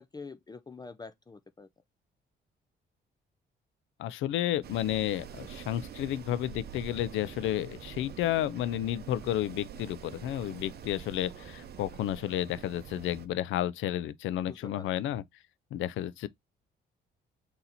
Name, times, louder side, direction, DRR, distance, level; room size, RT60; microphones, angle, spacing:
voice 1, 0.0-1.7 14.4-15.0, left 4 dB, 20° left, 0.4 m, -46 dB
voice 2, 4.0-15.2 15.7-16.3, left 12 dB, 80° left, 0.5 m, -31 dB
Wind, 4.6-13.3, right 8 dB, 55° right, 0.7 m, -46 dB
4.1 x 2.8 x 3.9 m
cardioid pair, 90°, 20 cm